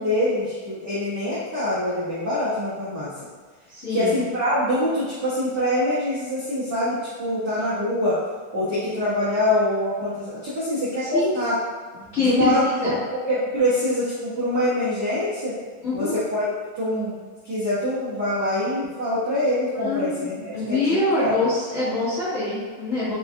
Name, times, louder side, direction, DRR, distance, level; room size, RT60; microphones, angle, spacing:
voice 1, 0.0-3.1 3.9-8.1 8.5-11.5 12.2-13.0 13.3-15.5 15.9-17.2 17.4-21.4, left 1 dB, 75° right, -12 dB, 0.9 m, -24 dB
voice 2, 3.7-4.1 11.0-11.4 12.1-12.9 15.8-16.1 19.8-23.2, left 3 dB, 35° left, -14 dB, 1.2 m, -24 dB
5.7 x 2.6 x 2.4 m, 1.5 s
omnidirectional pair, 3.5 m